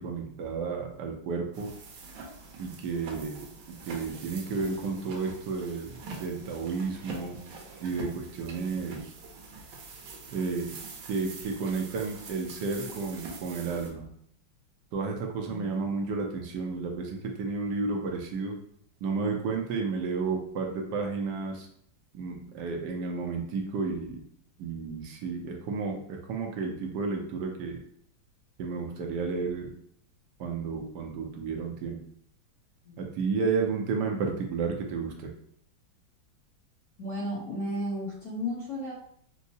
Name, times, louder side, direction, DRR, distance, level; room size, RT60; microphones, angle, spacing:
voice 1, 0.0-1.7 2.6-7.4 7.8-9.1 10.3-10.8 11.1-14.1 14.9-18.6 19.0-21.7 22.1-24.2 24.6-27.8 28.6-29.7 30.4-32.0 33.0-35.3, right 4 dB, 70° right, 1 dB, 1.1 m, -32 dB
sound 1, 1.5-13.9, right 4 dB, 85° right, 1.5 m, -44 dB
voice 2, 15.5-15.8 32.8-33.1 37.0-38.9, left 1 dB, 55° left, -6 dB, 1.2 m, -34 dB
4.5 x 2.0 x 2.7 m, 0.67 s
omnidirectional pair, 2.3 m